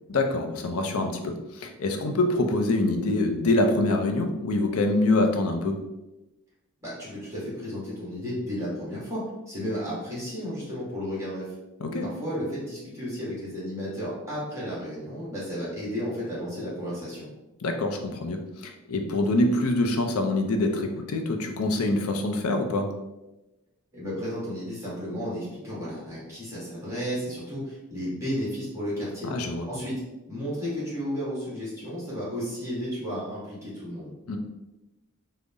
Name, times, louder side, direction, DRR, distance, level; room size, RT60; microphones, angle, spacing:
voice 1, 0.1-5.8 11.8-12.1 17.6-22.9 29.2-29.6 34.3-34.4, left 2 dB, 75° left, 4 dB, 0.5 m, -25 dB
voice 2, 6.8-9.2 9.5-11.5 12.0-17.3 23.9-29.3 29.7-29.9 30.3-34.1, equal, 15° right, -8 dB, 1.5 m, -33 dB
3.9 x 2.1 x 3.6 m, 1.0 s
head